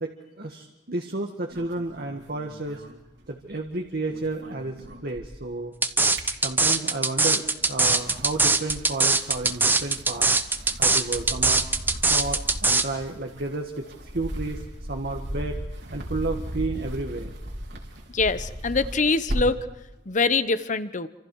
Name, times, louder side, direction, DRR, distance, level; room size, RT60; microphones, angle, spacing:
voice 1, 0.0-2.8 3.3-5.7 6.4-10.3 10.8-11.6 12.1-15.6 15.9-17.3, right 2 dB, 55° right, 2 dB, 1.5 m, -32 dB
sound 1, 1.5-3.7 4.0-5.6 5.9-7.0 7.5-19.7, equal, 80° right, 4.0 m, -37 dB
sound 2, 5.8-12.8, right 3 dB, 10° right, 0.9 m, -21 dB
voice 2, 18.1-19.7 20.1-21.1, left 4 dB, 45° left, 14 dB, 0.9 m, -24 dB
27.5 x 26.5 x 4.7 m, 1.0 s
head